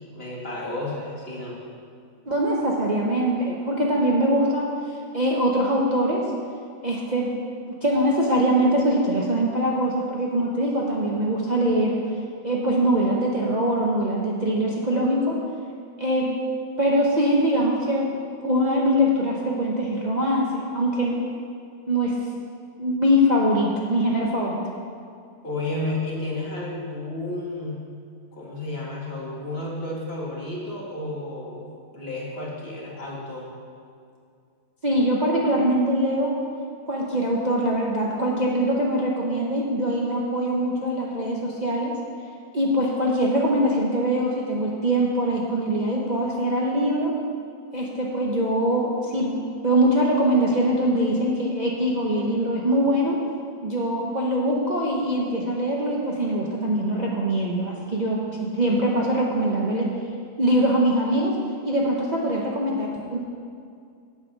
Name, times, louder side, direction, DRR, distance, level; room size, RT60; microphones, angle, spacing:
voice 1, 0.0-1.6 25.4-27.8 28.3-33.5, left 2 dB, 40° left, -4 dB, 2.1 m, -32 dB
voice 2, 2.3-4.7 5.1-6.2 6.8-7.3 7.8-12.0 12.4-15.4 16.0-21.3 21.9-22.1 22.8-24.6 34.8-36.3 36.9-41.9 42.5-47.1 47.7-53.2 53.6-58.2 58.5-59.9 60.4-61.3 61.6-63.2, right 1 dB, 35° right, -4 dB, 0.9 m, -23 dB
8.4 x 8.1 x 6.1 m, 2.3 s
omnidirectional pair, 1.6 m